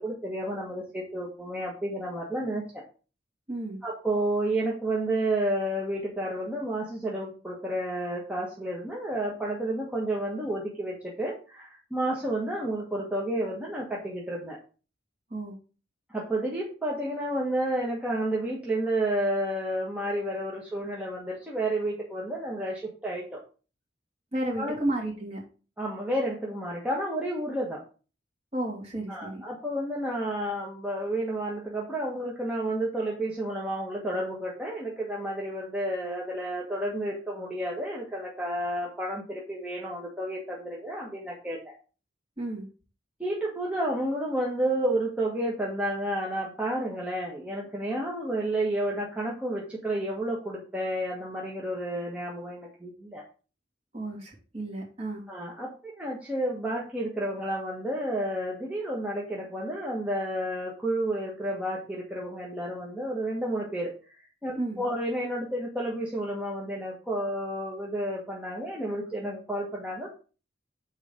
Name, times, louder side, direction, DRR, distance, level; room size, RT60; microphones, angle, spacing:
voice 1, 0.0-2.8 3.8-14.6 16.1-23.4 24.6-24.8 25.8-27.8 29.1-41.7 43.2-53.2 55.3-63.9 64.4-70.1, right 1 dB, 10° right, -4 dB, 1.4 m, -31 dB
voice 2, 3.5-3.8 15.3-15.5 24.3-25.4 28.5-29.4 42.4-42.7 53.9-55.2 64.5-64.8, right 1 dB, 35° right, -3 dB, 2.9 m, -32 dB
6.6 x 4.5 x 5.0 m, 0.36 s
head